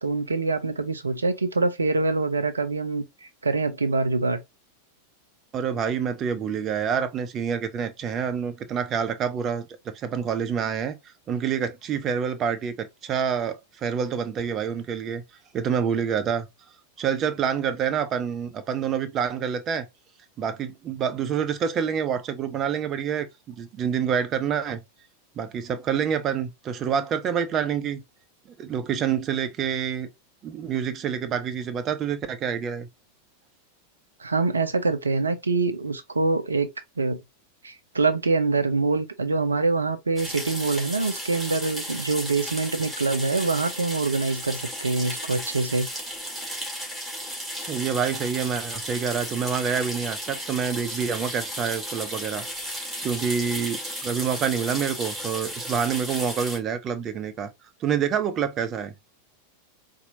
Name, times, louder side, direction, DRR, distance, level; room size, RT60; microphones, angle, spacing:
voice 1, 0.0-4.4 34.2-36.7 37.0-37.2 37.6-45.9, right 3 dB, 75° right, 0.6 m, -25 dB
voice 2, 5.5-15.2 15.5-16.5 17.0-19.9 20.4-24.8 25.4-28.0 28.6-30.1 30.4-32.9 47.7-52.4 53.0-57.5 57.8-58.9, right 7 dB, 30° right, 0.6 m, -27 dB
sound 1, 40.2-56.6, equal, 5° right, 1.9 m, -34 dB
4.3 x 2.7 x 2.6 m
figure-of-eight pair, 90°, 0 cm